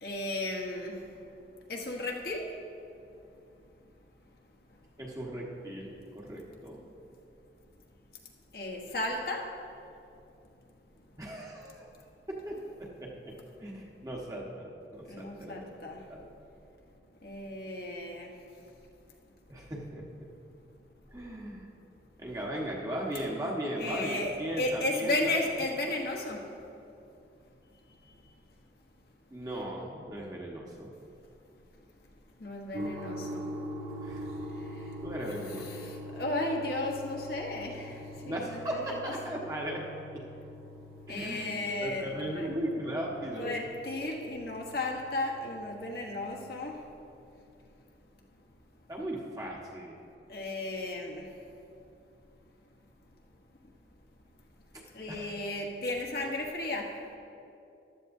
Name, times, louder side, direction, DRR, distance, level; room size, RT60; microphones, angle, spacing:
voice 1, 0.0-1.0 1.7-2.5 8.5-9.5 15.1-16.0 17.2-18.3 23.8-26.5 32.4-33.4 35.6-38.0 38.3-39.1 41.1-42.5 43.4-46.8 50.3-51.2 54.9-57.0, left 2 dB, 55° left, 0 dB, 1.2 m, -34 dB
voice 2, 5.0-6.8 11.2-11.9 12.3-12.6 13.2-13.3 13.6-16.2 19.5-20.0 21.1-21.6 22.2-25.3 29.3-30.9 34.0-34.3 35.0-35.9 38.2-39.8 40.1-40.2 41.1-41.5 41.8-43.5 48.9-49.9 55.1-55.4, right 1 dB, 20° right, -3 dB, 1.3 m, -37 dB
sound 1, 32.7-46.4, equal, 50° right, 0.8 m, -43 dB
15.0 x 12.0 x 2.7 m, 2.7 s
head